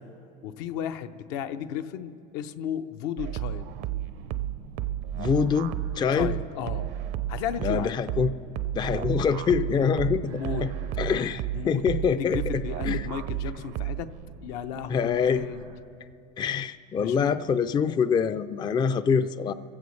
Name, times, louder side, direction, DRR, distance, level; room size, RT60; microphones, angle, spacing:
voice 1, 0.4-3.7 6.1-6.9 7.3-7.9 10.2-10.6 11.5-11.8 12.1-14.1 14.4-15.6 17.0-17.4, left 8 dB, 75° left, 8 dB, 0.7 m, -34 dB
sound 1, 3.2-14.2, right 13 dB, 60° right, 0.6 m, -32 dB
sound 2, 3.4-15.8, right 6 dB, 85° right, 1.5 m, -47 dB
voice 2, 5.1-6.3 7.6-8.3 8.7-10.7 11.0-13.1 14.9-15.5 16.4-19.5, left 6 dB, 20° left, 12 dB, 0.4 m, -25 dB
26.5 x 15.5 x 3.2 m, 2.6 s
supercardioid pair, 115°, 21 cm